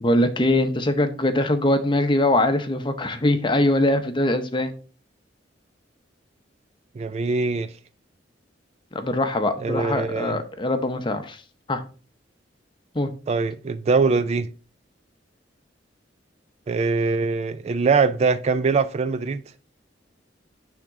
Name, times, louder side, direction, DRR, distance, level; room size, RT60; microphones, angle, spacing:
voice 1, 0.0-4.7 8.9-11.4 11.7-11.8 12.9-13.1, left 1 dB, 25° left, 0.7 m, -22 dB
voice 2, 7.0-7.7 9.6-10.4 13.3-14.5 16.7-19.4, right 4 dB, 35° right, 0.3 m, -22 dB
9.1 x 3.6 x 3.6 m
head